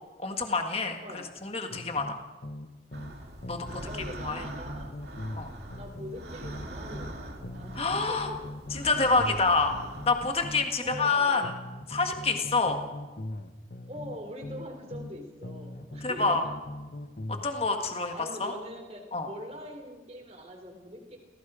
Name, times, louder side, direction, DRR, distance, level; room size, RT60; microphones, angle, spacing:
voice 1, 0.2-2.2 3.5-3.8 4.2-4.4 5.4-5.5 7.7-8.3 8.7-9.8 10.1-11.5 11.9-12.8 16.0-16.4 17.3-18.5 19.1-19.3, left 3 dB, 35° left, 4 dB, 1.7 m, -27 dB
sound 1, 1.7-3.2 3.4-7.1 7.4-11.1 11.4-15.1 15.4-17.5, left 1 dB, 50° left, 1.1 m, -41 dB
sound 2, 2.9-10.5, right 1 dB, 65° right, 2.5 m, -43 dB
voice 2, 3.7-4.9 5.8-8.4 10.8-11.5 13.9-16.5 18.1-21.2, equal, 35° right, 4 dB, 3.8 m, -43 dB
29.5 x 17.5 x 5.0 m, 1.3 s
head